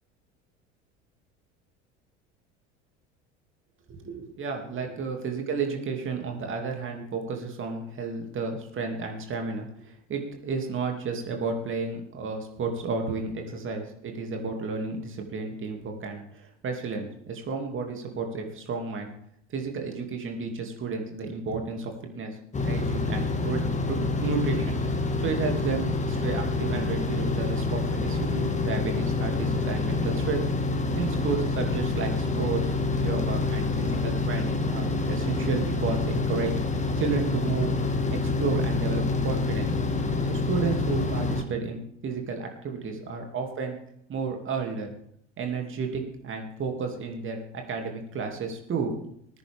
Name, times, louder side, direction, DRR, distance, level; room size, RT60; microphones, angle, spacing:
voice 1, 3.9-19.1 19.5-22.3 22.6-24.8 25.2-30.4 31.0-36.5 37.0-37.8 38.1-39.7 40.3-43.8 44.1-44.9 45.4-48.9, right 4 dB, 35° right, 3 dB, 2.6 m, -32 dB
sound 1, 22.5-41.4, left 3 dB, 20° left, 1.6 m, -27 dB
19.0 x 9.8 x 3.6 m, 0.70 s
figure-of-eight pair, 65°, 35 cm